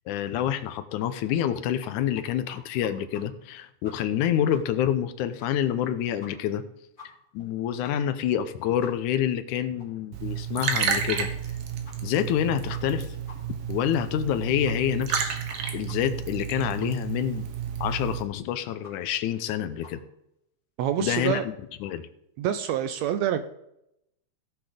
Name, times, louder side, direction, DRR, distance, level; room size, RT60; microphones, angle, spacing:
voice 1, 0.1-6.6 7.0-11.3 12.0-13.2 13.7-15.4 15.7-17.5 17.8-20.0 21.0-21.6 21.8-22.1, left 10 dB, 80° left, 11 dB, 2.2 m, -27 dB
sound 1, 1.0-1.9 2.2-2.3 2.5-3.2 3.5-3.6 3.8-4.2 4.5-4.6 4.9-5.0 5.4-5.5 5.8-5.9 6.2-6.6 7.0-7.1 7.4-7.5 7.8-7.9 8.3-8.4 8.8-8.9 9.3-9.4 9.8-9.9 10.3-10.4 10.8-10.9 11.3-11.4 11.8-12.0 12.3-12.4 12.7-13.0 13.3-13.4 13.6-13.7 14.0-14.3 14.6-14.8 15.1-15.2 15.5-15.6 15.9-16.0 16.3-16.4 16.8-16.9 17.3-17.4 17.9-18.0 18.3-18.4 18.8-18.9 19.3-19.4 19.8-19.9, left 4 dB, 25° left, 4.0 m, -47 dB
Liquid, 10.1-18.2, right 7 dB, 60° right, 1.9 m, -31 dB
voice 2, 20.8-21.4 22.4-23.4, right 10 dB, 80° right, 10 dB, 1.7 m, -26 dB
16.5 x 6.0 x 5.0 m, 0.80 s
omnidirectional pair, 3.5 m